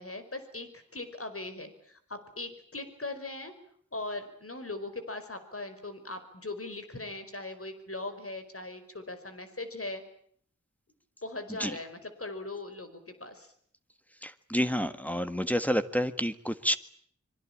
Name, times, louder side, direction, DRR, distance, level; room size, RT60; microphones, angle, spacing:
voice 1, 0.0-3.5 3.9-10.0 11.2-13.5, left 2 dB, 50° left, 9 dB, 5.0 m, -40 dB
voice 2, 14.2-16.8, equal, 5° left, 9 dB, 1.7 m, -29 dB
25.5 x 24.0 x 8.8 m, 0.62 s
wide cardioid pair, 60°, 29 cm